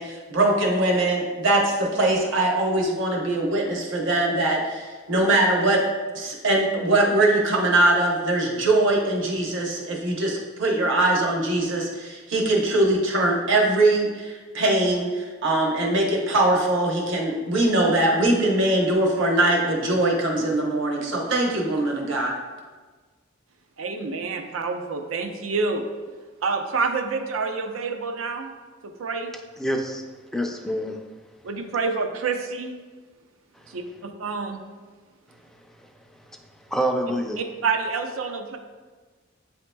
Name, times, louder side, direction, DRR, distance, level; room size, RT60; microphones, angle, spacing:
voice 1, 0.0-5.8 6.1-22.3, right 2 dB, 65° right, -1 dB, 0.9 m, -22 dB
voice 2, 23.8-25.8 26.4-28.5 28.8-29.3 31.4-32.7 33.7-34.6 37.4-38.6, right 4 dB, 85° right, 5 dB, 0.5 m, -28 dB
voice 3, 29.6-30.0 30.3-31.0 33.6-33.7 35.8-35.9 36.7-37.4, right 1 dB, ahead, 2 dB, 0.3 m, -26 dB
8.1 x 2.8 x 2.2 m, 1.4 s
head